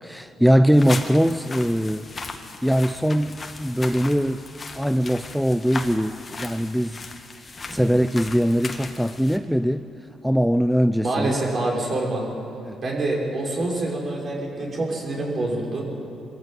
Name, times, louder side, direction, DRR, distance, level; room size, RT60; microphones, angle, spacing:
voice 1, 0.0-2.1 2.6-4.4 4.7-7.0 7.7-9.8 10.2-11.3 12.7-12.8, equal, ahead, 11 dB, 0.5 m, -21 dB
sound 1, 0.7-9.4, left 3 dB, 35° left, 2.0 m, -37 dB
voice 2, 11.0-12.3 12.8-15.8, right 2 dB, 45° right, -1 dB, 5.5 m, -26 dB
23.5 x 14.5 x 9.1 m, 2.7 s
cardioid pair, 90°, 0 cm